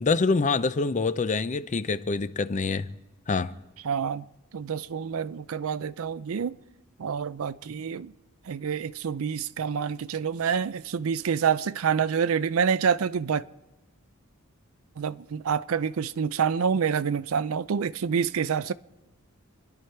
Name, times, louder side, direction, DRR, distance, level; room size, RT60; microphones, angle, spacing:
voice 1, 0.0-2.9 3.3-3.6, left 4 dB, 35° left, 0.5 m, -26 dB
voice 2, 3.8-4.2 4.5-6.6 7.0-8.1 8.5-13.4 15.0-18.7, right 6 dB, 65° right, 0.4 m, -27 dB
27.5 x 11.0 x 4.5 m
head